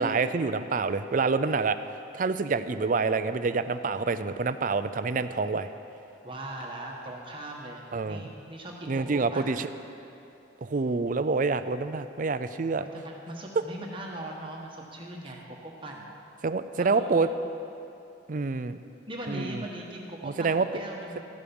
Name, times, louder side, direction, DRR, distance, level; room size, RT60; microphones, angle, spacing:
voice 1, 0.0-1.8 2.1-5.7 7.9-8.3 8.9-9.7 10.6-12.8 16.4-17.3 18.3-18.8 19.3-19.6 20.2-20.7 21.2-21.3, right 4 dB, 45° right, 11 dB, 0.4 m, -27 dB
voice 2, 6.2-9.5 12.8-16.1 16.8-17.4 19.1-21.2, right 1 dB, 25° right, -1 dB, 1.2 m, -40 dB
13.5 x 11.5 x 5.3 m, 2.7 s
head